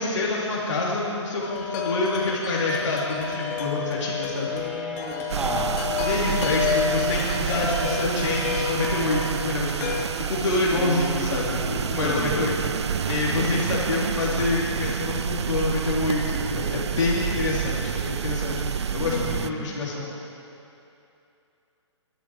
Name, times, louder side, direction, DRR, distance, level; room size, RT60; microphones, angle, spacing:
voice 1, 0.0-4.5 6.0-12.5 13.1-20.1, left 2 dB, 75° left, -6 dB, 2.9 m, -27 dB
Wind chime, 1.4-10.1, left 7 dB, 35° left, 1.9 m, -30 dB
voice 2, 4.5-5.8 10.7-12.4 18.9-19.8, right 1 dB, 5° right, -4 dB, 2.3 m, -34 dB
sound 1, 5.3-19.5, right 8 dB, 65° right, 0.5 m, -28 dB
22.5 x 11.0 x 4.7 m, 2.7 s
figure-of-eight pair, 135°, 16 cm